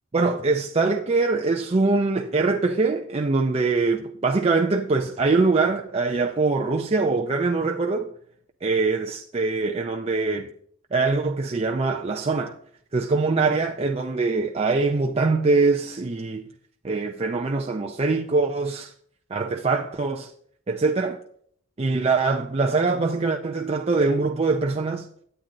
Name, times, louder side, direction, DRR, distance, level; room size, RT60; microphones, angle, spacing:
voice 1, 0.1-8.1 8.6-10.5 10.9-12.6 12.9-16.4 16.8-18.9 19.3-20.3 20.7-21.2 21.8-25.1, right 3 dB, 30° right, 0.4 m, -23 dB
9.1 x 8.9 x 3.9 m
head